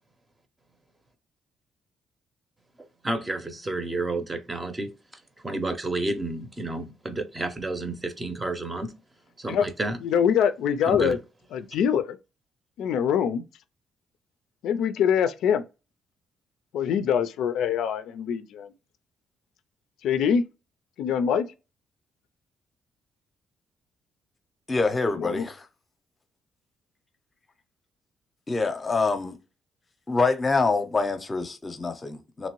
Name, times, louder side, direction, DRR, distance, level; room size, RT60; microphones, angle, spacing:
voice 1, 3.0-8.9 9.4-10.0 10.8-11.2, right 2 dB, 20° right, 0.6 m, -31 dB
voice 2, 10.0-11.2 11.5-12.2 12.8-13.4 14.6-15.6 16.7-18.7 20.0-20.4 21.0-21.4 25.2-25.4, left 8 dB, 85° left, 0.3 m, -24 dB
voice 3, 24.7-25.7 28.5-29.4 30.1-32.5, left 3 dB, 30° left, 0.6 m, -25 dB
3.0 x 2.6 x 3.0 m
cardioid pair, 90°, 0 cm